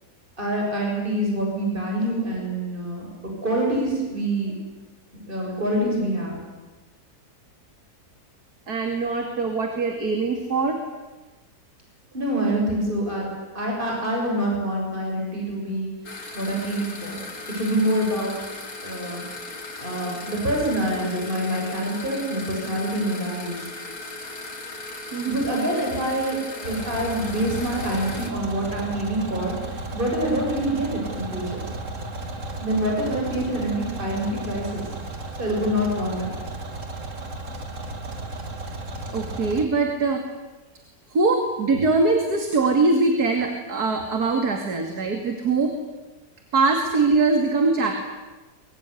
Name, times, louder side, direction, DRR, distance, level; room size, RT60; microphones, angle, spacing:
voice 1, 0.4-3.1 3.4-4.5 5.3-6.4 12.1-13.3 13.5-15.9 16.3-17.2 17.5-18.4 18.8-19.2 19.8-23.7 25.3-31.6 32.6-34.9 35.4-36.3, right 1 dB, 30° right, -1 dB, 7.6 m, -26 dB
voice 2, 8.7-10.8 25.1-25.5 39.1-40.2 41.1-45.8 46.5-48.1, right 3 dB, 80° right, 4 dB, 3.1 m, -22 dB
sound 1, 16.0-28.3, left 2 dB, 65° left, 3.6 m, -37 dB
sound 2, 26.6-39.6, right 2 dB, 55° right, 2.6 m, -34 dB
24.0 x 23.5 x 9.9 m, 1.2 s
omnidirectional pair, 1.6 m